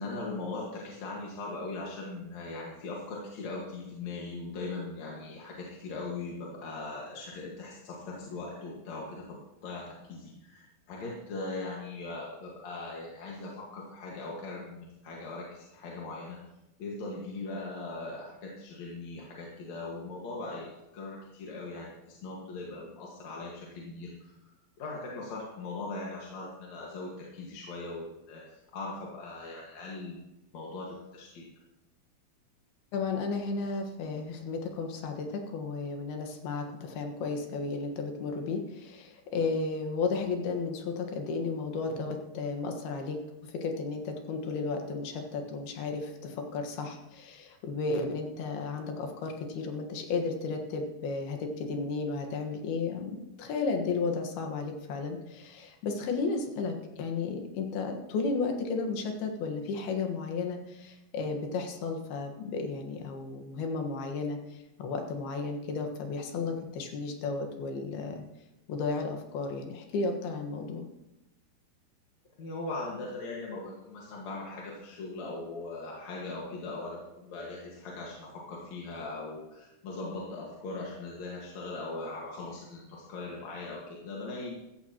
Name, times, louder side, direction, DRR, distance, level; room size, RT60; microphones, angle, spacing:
voice 1, 0.0-16.4 16.8-24.3 24.8-30.3 30.5-31.4 72.4-84.6, left 3 dB, 55° left, -3 dB, 2.7 m, -40 dB
voice 2, 32.9-43.2 43.6-64.4 64.8-68.2 68.7-70.9, left 4 dB, 80° left, 4 dB, 3.5 m, -33 dB
15.5 x 14.0 x 3.0 m, 0.94 s
omnidirectional pair, 4.4 m